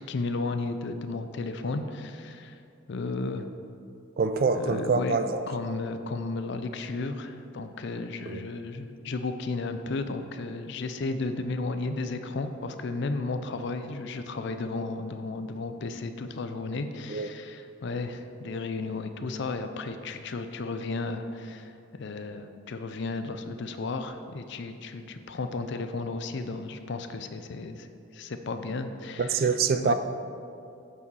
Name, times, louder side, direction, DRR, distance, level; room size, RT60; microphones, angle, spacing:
voice 1, 0.1-2.6 2.9-3.5 4.6-5.2 5.5-27.9 28.1-29.5 29.8-29.9, left 3 dB, 55° left, 8 dB, 0.4 m, -34 dB
voice 2, 4.2-5.4 8.3-8.4 17.1-17.3 29.2-29.9, right 4 dB, 45° right, 10 dB, 0.3 m, -25 dB
8.5 x 4.8 x 4.7 m, 2.5 s
head